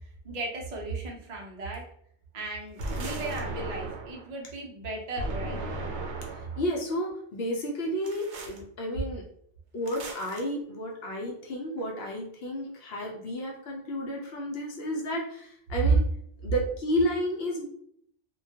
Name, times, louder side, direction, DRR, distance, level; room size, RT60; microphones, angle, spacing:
voice 1, 0.2-1.8 2.3-5.6, right 2 dB, 50° right, -1 dB, 0.5 m, -36 dB
sound 1, 2.8-4.3 5.2-6.6 8.0-8.6 9.9-10.4, right 2 dB, 70° right, 0.9 m, -35 dB
voice 2, 6.3-9.2 9.7-16.0 16.4-17.7, equal, 60° left, 0 dB, 0.7 m, -32 dB
2.2 x 2.2 x 2.7 m, 0.67 s
omnidirectional pair, 1.2 m